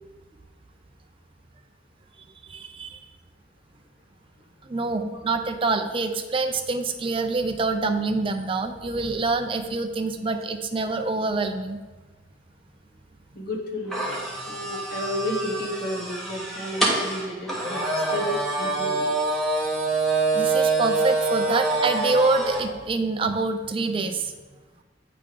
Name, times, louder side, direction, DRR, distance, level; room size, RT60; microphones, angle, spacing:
voice 1, 2.4-3.0 4.6-11.8 20.3-24.3, right 3 dB, 30° right, 6 dB, 0.5 m, -26 dB
voice 2, 13.3-14.1 14.5-17.8 18.1-19.1, equal, 55° left, 0 dB, 1.3 m, -32 dB
sound 1, 13.9-22.7, right 3 dB, ahead, 1.2 m, -25 dB
8.6 x 3.4 x 5.1 m, 1.2 s
head